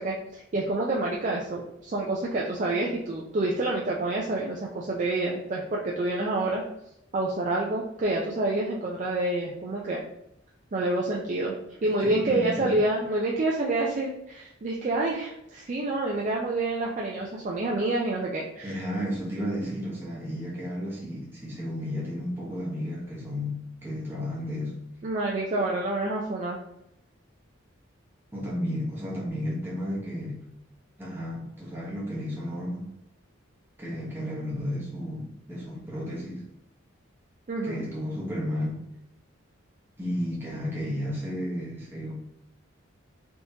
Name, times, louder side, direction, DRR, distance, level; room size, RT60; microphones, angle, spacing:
voice 1, 0.0-6.6 7.1-10.0 10.7-11.5 11.8-18.8 25.0-26.6 37.5-37.8, right 2 dB, 35° right, -2 dB, 0.3 m, -28 dB
voice 2, 11.8-12.8 18.6-24.7 28.3-30.4 31.0-32.9 33.8-36.4 37.6-38.8 40.0-42.1, equal, 10° right, -6 dB, 0.9 m, -33 dB
3.4 x 2.8 x 2.8 m, 0.82 s
head